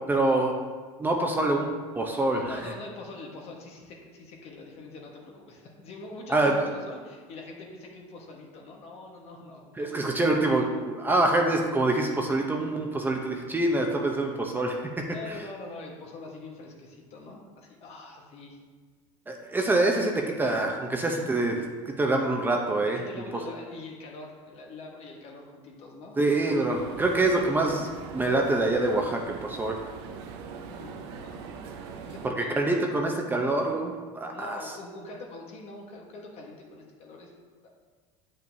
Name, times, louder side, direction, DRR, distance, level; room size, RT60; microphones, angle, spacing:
voice 1, 0.1-0.5 1.0-1.7 1.9-2.7 6.3-6.7 9.8-15.4 19.3-23.0 26.2-29.8 32.2-34.6, right 2 dB, 15° right, 1 dB, 0.7 m, -26 dB
voice 2, 2.3-10.3 15.0-18.6 23.0-26.2 30.8-31.6 32.0-32.6 34.3-37.3 37.6-37.7, left 2 dB, 50° left, 0 dB, 1.3 m, -44 dB
sound 1, 26.7-32.3, right 5 dB, 80° right, 0.7 m, -41 dB
8.6 x 5.5 x 2.7 m, 1.5 s
supercardioid pair, 115°, 14 cm